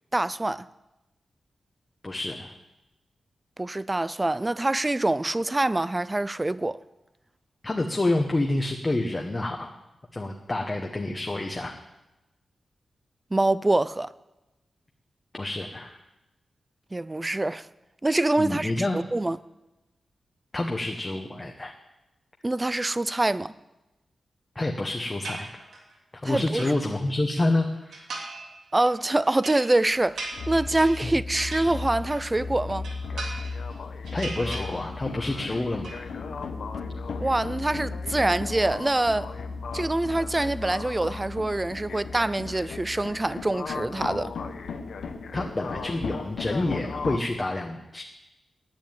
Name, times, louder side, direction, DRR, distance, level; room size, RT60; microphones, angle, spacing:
voice 1, 0.1-0.7 3.6-6.8 13.3-14.1 16.9-17.7 18.0-19.4 22.4-23.5 26.2-26.7 28.7-32.9 37.2-39.3 39.7-44.3, right 2 dB, 15° right, 0.4 m, -25 dB
voice 2, 2.0-2.6 7.6-9.7 10.1-11.7 15.3-16.0 18.4-19.1 20.5-21.7 24.5-25.5 26.1-28.1 31.0-31.1 34.1-35.9 45.3-48.0, left 2 dB, 20° left, 1.0 m, -28 dB
sound 1, 25.2-25.9 26.3-27.4 27.9-28.5 28.9-32.4 32.7-33.7 34.0-35.1 35.4-36.0, right 3 dB, 90° right, 3.0 m, -40 dB
sound 2, 29.9-47.2, left 4 dB, 80° left, 1.1 m, -35 dB
10.5 x 10.0 x 9.0 m
wide cardioid pair, 135°, 0 cm